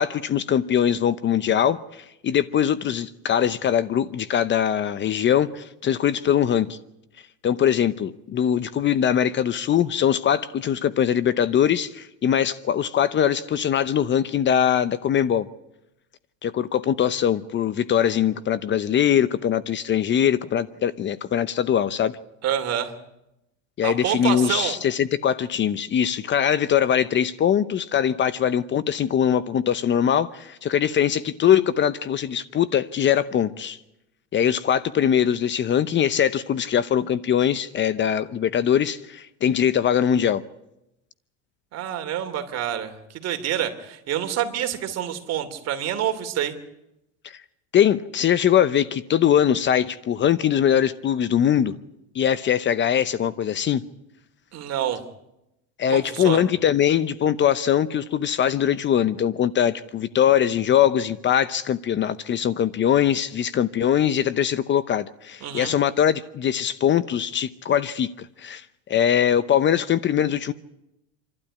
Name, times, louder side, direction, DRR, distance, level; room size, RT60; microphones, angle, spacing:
voice 1, 0.0-6.8 7.4-15.5 16.4-22.2 23.8-33.8 34.3-40.4 47.2-47.4 47.7-51.7 52.1-53.8 55.8-70.5, left 9 dB, 35° left, 0.8 m, -22 dB
voice 2, 22.4-22.9 23.8-24.8 41.7-46.5 54.5-55.0 55.9-56.4 65.4-65.7, right 10 dB, 50° right, 2.9 m, -27 dB
28.5 x 12.5 x 9.8 m
supercardioid pair, 120°, 34 cm